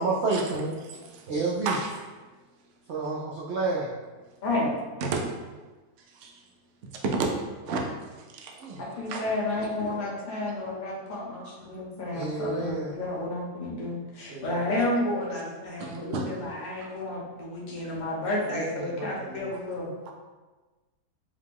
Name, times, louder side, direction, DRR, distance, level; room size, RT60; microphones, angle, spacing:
voice 1, 0.0-0.8 1.3-1.8 2.9-3.9 12.1-12.9 14.3-14.9 18.8-19.5, right 3 dB, 85° right, -4 dB, 0.6 m, -30 dB
voice 2, 0.8-1.3 1.6-2.1 5.0-5.2 6.1-6.4 6.8-7.3 7.7-7.8 8.3-9.2 11.4-11.5 15.8-16.3 16.8-16.9 17.8-17.9 19.5-19.6 20.1-20.2, right 4 dB, 60° right, 0 dB, 0.8 m, -32 dB
voice 3, 4.4-4.7 8.8-19.9, left 2 dB, 35° left, -5 dB, 0.9 m, -31 dB
5.2 x 2.3 x 3.4 m, 1.3 s
omnidirectional pair, 1.8 m